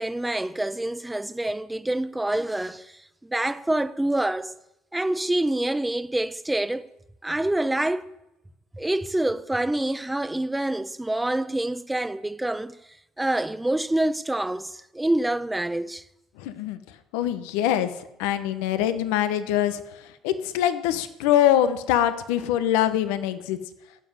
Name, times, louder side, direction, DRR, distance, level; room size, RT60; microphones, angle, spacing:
voice 1, 0.0-4.6 4.9-6.9 7.2-8.1 8.7-12.8 13.2-16.0, right 1 dB, 10° right, 0.8 m, -26 dB
voice 2, 16.4-16.8 17.1-17.9 18.2-19.8 20.2-23.6, left 11 dB, 90° left, 1.1 m, -23 dB
15.0 x 7.5 x 9.6 m
supercardioid pair, 100°, 0 cm